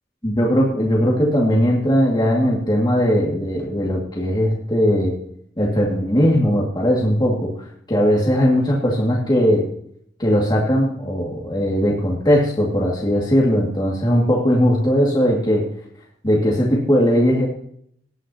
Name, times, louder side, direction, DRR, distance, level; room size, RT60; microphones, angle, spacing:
voice 1, 0.2-5.2 5.6-9.7 10.2-15.7 16.2-17.5, equal, 25° left, -3 dB, 2.1 m, -19 dB
18.0 x 9.3 x 2.9 m, 0.66 s
head